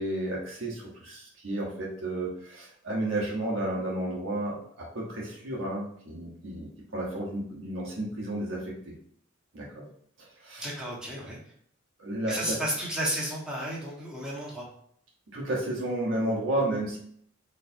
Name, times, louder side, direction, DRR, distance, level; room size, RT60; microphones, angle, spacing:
voice 1, 0.0-8.9 9.5-9.8 10.2-10.6 12.0-12.6 15.3-17.0, right 1 dB, 75° right, -4 dB, 1.1 m, -32 dB
voice 2, 10.6-11.4 12.3-14.6, right 1 dB, 5° right, -6 dB, 1.4 m, -32 dB
4.3 x 3.3 x 2.7 m, 0.64 s
head